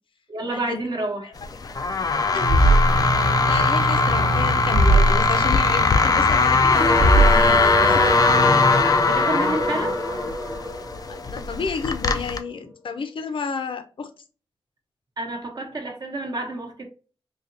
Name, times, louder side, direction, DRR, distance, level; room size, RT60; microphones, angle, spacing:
voice 1, 0.3-1.3 9.0-10.0 15.2-16.8, right 2 dB, 45° right, 0.9 m, -29 dB
sound 1, 1.4-12.4, left 4 dB, 40° left, 0.3 m, -21 dB
voice 2, 2.3-2.8 3.4-8.1 11.1-14.1, left 5 dB, 65° left, 0.7 m, -31 dB
sound 2, 2.4-9.1, right 2 dB, 90° right, 1.1 m, -22 dB
sound 3, 6.7-11.9, left 1 dB, 5° right, 0.7 m, -24 dB
4.1 x 2.8 x 2.6 m
wide cardioid pair, 175°, 10 cm